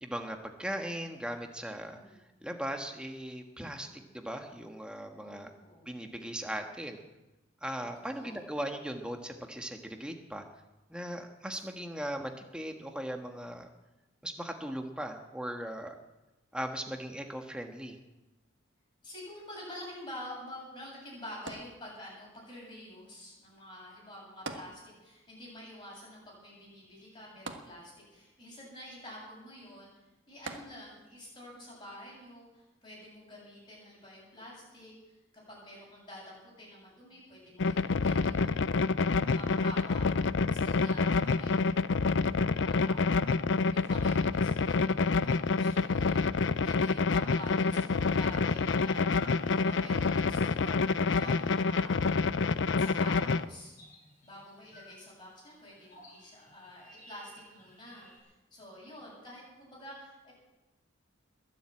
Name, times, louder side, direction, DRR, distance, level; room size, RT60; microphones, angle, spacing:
voice 1, 0.0-2.0 2.4-3.9 4.1-5.5 5.9-7.0 7.6-10.4 10.9-13.7 14.2-15.9 16.5-18.0, equal, 5° right, 4 dB, 1.4 m, -38 dB
voice 2, 1.8-2.2 3.7-4.1 5.2-5.9 8.0-8.4 19.0-29.9 30.3-35.2 35.5-38.6 39.2-40.1 40.4-43.2 43.7-52.0 52.8-53.8 54.2-60.3, left 1 dB, 20° left, -4 dB, 8.0 m, -48 dB
sound 1, 21.5-22.4 24.5-25.3 25.6-25.7 27.5-28.3 30.5-31.2 31.9-32.0, right 3 dB, 65° right, 1.5 m, -44 dB
sound 2, 37.6-53.5, left 4 dB, 60° left, 0.5 m, -27 dB
sound 3, 48.2-58.2, left 1 dB, 40° left, 5.7 m, -55 dB
21.5 x 7.7 x 8.7 m, 1.0 s
head